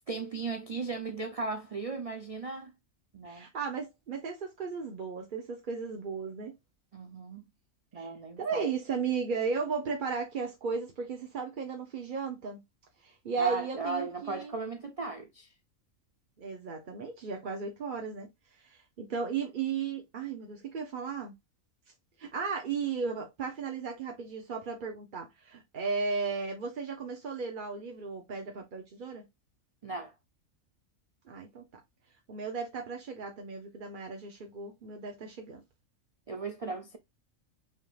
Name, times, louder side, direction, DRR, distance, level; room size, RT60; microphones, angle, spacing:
voice 1, 0.1-2.7 3.1-3.5 6.9-7.4 7.9-8.7 13.4-15.5 29.8-30.1 36.3-37.0, right 3 dB, 65° right, 0.3 m, -37 dB
voice 2, 3.2-6.5 7.9-8.1 8.4-12.6 13.0-14.5 16.4-21.3 22.2-29.2 31.3-31.6 32.3-35.6, right 5 dB, 45° right, 0.8 m, -35 dB
5.4 x 3.6 x 2.3 m
omnidirectional pair, 1.4 m